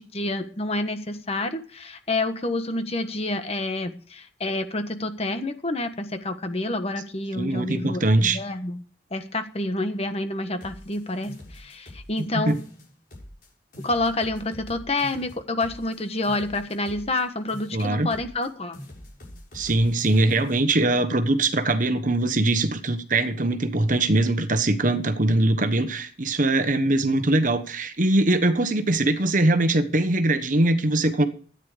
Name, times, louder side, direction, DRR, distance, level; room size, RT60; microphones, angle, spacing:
voice 1, 0.0-8.8 9.1-12.6 13.8-18.8, left 2 dB, 35° left, 1.4 m, -28 dB
voice 2, 7.3-8.4 12.3-12.6 17.7-18.1 19.5-31.3, right 2 dB, 45° right, 1.2 m, -22 dB
sound 1, 10.6-12.2 12.5-13.5 13.7-17.2 17.5-18.5 18.7-20.6, left 1 dB, 50° left, 6.8 m, -44 dB
13.5 x 9.7 x 5.0 m
head